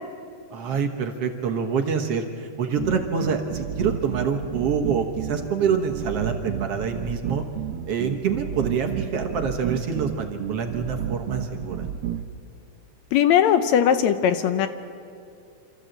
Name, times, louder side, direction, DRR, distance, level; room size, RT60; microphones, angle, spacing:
voice 1, 0.5-7.4 7.9-11.8, right 6 dB, 60° right, 4 dB, 2.1 m, -26 dB
sound 1, 2.8-12.2, right 9 dB, 75° right, 1.2 m, -31 dB
voice 2, 13.1-14.7, left 9 dB, 75° left, 10 dB, 1.9 m, -19 dB
27.5 x 14.0 x 7.9 m, 2.5 s
omnidirectional pair, 3.4 m